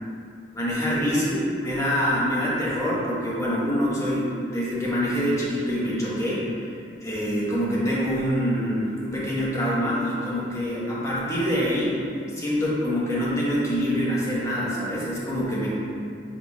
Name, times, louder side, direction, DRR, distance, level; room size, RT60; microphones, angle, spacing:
voice 1, 0.5-6.6 7.0-12.0 12.3-15.7, equal, 15° left, -8 dB, 1.1 m, -25 dB
6.0 x 3.9 x 2.3 m, 2.4 s
head